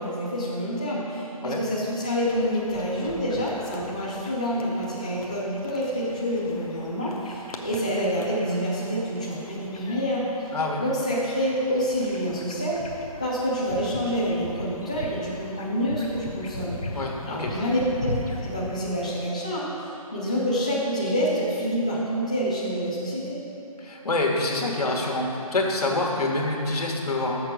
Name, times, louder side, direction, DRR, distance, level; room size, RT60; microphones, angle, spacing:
voice 1, 0.0-10.5 10.8-12.8 13.2-16.8 17.2-18.1 18.4-23.4, equal, 10° left, -9 dB, 0.4 m, -27 dB
sound 1, 2.2-19.2, left 2 dB, 70° left, 1.0 m, -40 dB
voice 2, 10.5-10.8 16.9-17.1 17.4-17.5 23.8-27.4, left 2 dB, 85° left, -1 dB, 1.6 m, -26 dB
6.6 x 6.0 x 6.3 m, 2.9 s
hypercardioid pair, 175°, 19 cm